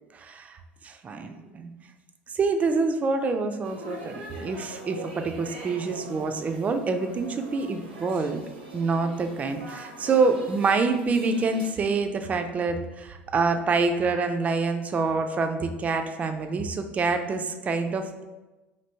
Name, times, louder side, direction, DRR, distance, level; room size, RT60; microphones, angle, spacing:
voice 1, 0.1-0.6 0.8-1.7 2.3-8.4 8.7-18.2, right 4 dB, 25° right, 6 dB, 0.3 m, -26 dB
sound 1, 3.6-11.7, right 1 dB, 75° right, 0.6 m, -42 dB
3.2 x 2.6 x 2.7 m, 1.1 s
figure-of-eight pair, 70°, 6 cm